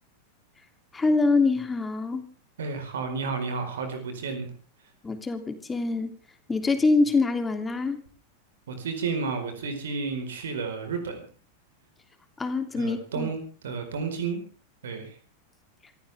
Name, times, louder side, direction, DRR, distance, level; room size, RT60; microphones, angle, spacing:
voice 1, 0.9-2.2 5.0-6.1 6.5-8.0 12.4-13.3, left 3 dB, 15° left, 8 dB, 3.0 m, -25 dB
voice 2, 2.6-4.5 8.7-11.2 12.7-14.4 14.8-15.2, right 5 dB, 65° right, 7 dB, 4.6 m, -31 dB
27.0 x 15.0 x 3.5 m, 0.39 s
figure-of-eight pair, 90°, 0 cm